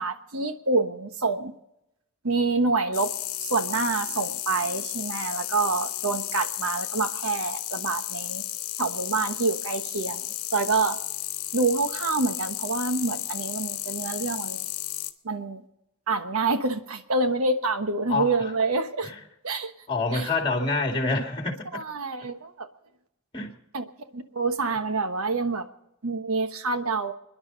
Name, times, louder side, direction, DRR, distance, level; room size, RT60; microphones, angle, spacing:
voice 1, 0.0-1.5 2.2-3.1 3.4-8.4 8.8-11.0 11.5-14.6 15.2-15.6 16.1-19.1 19.4-19.7 20.1-20.3 21.7-22.7 23.7-23.8 24.1-25.7 26.0-27.1, right 3 dB, 90° right, 8 dB, 1.2 m, -27 dB
sound 1, 2.9-15.1, left 14 dB, 80° left, 1.1 m, -33 dB
voice 2, 18.1-18.5 19.9-21.8 23.3-23.5, left 3 dB, 25° left, 2 dB, 2.2 m, -26 dB
30.0 x 10.5 x 4.0 m, 0.86 s
head